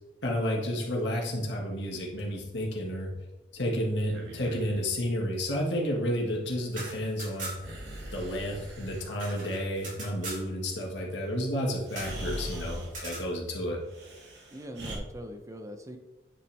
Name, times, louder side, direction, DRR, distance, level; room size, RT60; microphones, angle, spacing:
voice 1, 0.2-3.1 3.5-7.5 8.1-13.8, equal, 85° left, -1 dB, 1.9 m, -31 dB
Breathing, 4.0-4.9 7.6-9.1 11.2-11.3 11.9-13.0 13.9-15.0, equal, 70° right, 1.9 m, -41 dB
sound 1, 6.7-7.8 8.1-8.2 8.5-10.5 11.9-12.2 12.9-13.3, right 2 dB, 50° right, 2.8 m, -40 dB
voice 2, 14.5-16.0, equal, 20° right, 5 dB, 0.7 m, -42 dB
9.5 x 5.5 x 3.5 m, 1.1 s
head